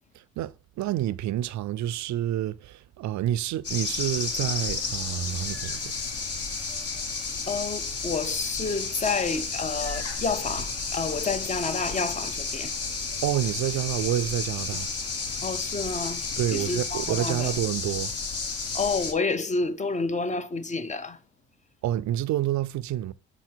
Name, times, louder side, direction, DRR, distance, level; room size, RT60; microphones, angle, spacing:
voice 1, 0.2-5.9 13.2-14.9 15.3-15.4 16.4-18.1 21.8-23.1, right 12 dB, 70° right, 0.5 m, -28 dB
sound 1, 3.6-19.1, left 4 dB, 50° left, 1.3 m, -32 dB
voice 2, 7.5-12.7 14.7-14.8 15.4-16.2 16.5-17.5 18.7-21.2, left 4 dB, 25° left, 0.6 m, -29 dB
6.1 x 4.2 x 4.5 m
cardioid pair, 90°, 30 cm